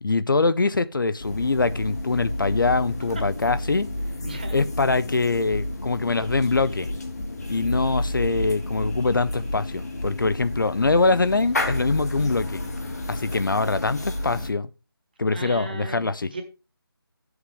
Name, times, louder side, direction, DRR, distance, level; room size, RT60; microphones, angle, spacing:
voice 1, 0.0-3.9 4.5-6.9 7.5-12.6 13.1-14.7 15.2-16.3, left 3 dB, 55° left, 0.6 m, -23 dB
sound 1, 1.2-14.5, left 1 dB, 40° left, 1.6 m, -31 dB
voice 2, 4.2-4.6 4.9-5.0 15.3-16.4, right 3 dB, 25° right, 1.5 m, -36 dB
10.0 x 8.0 x 3.3 m
figure-of-eight pair, 180°, 13 cm